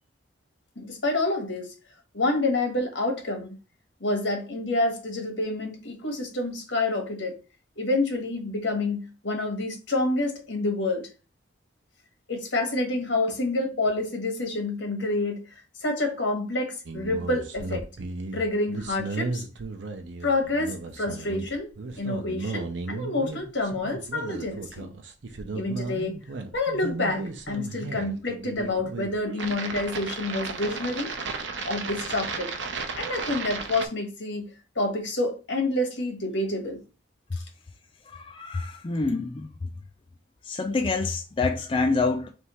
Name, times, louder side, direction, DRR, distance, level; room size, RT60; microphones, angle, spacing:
voice 1, 0.8-1.7 2.1-3.5 4.0-7.4 7.8-11.1 12.3-15.4 15.8-17.8 18.3-19.4 20.2-21.7 22.0-24.9 25.5-26.2 26.5-31.1 31.7-32.5 32.9-36.8, left 2 dB, 75° left, 1.4 m, -28 dB
sound 1, 16.9-33.9, right 3 dB, 75° right, 0.7 m, -35 dB
voice 2, 38.1-39.7 40.4-42.3, left 3 dB, 30° left, 0.4 m, -27 dB
3.4 x 3.0 x 4.3 m
head